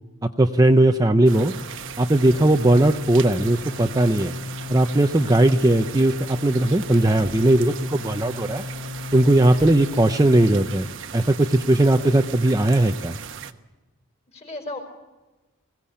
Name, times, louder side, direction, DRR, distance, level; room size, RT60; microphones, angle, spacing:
voice 1, 0.4-1.5 2.0-4.3 4.7-8.6 9.1-10.9 11.1-13.2, right 1 dB, 15° right, 6 dB, 0.6 m, -18 dB
sound 1, 1.3-10.7, left 3 dB, 70° left, 4.7 m, -35 dB
sound 2, 1.3-13.5, right 7 dB, 60° right, 1.0 m, -38 dB
sound 3, 9.6-10.2, equal, 45° left, 4.8 m, -47 dB
voice 2, 14.3-14.8, left 2 dB, 30° left, 3 dB, 4.8 m, -36 dB
22.0 x 17.0 x 8.6 m, 1.2 s
head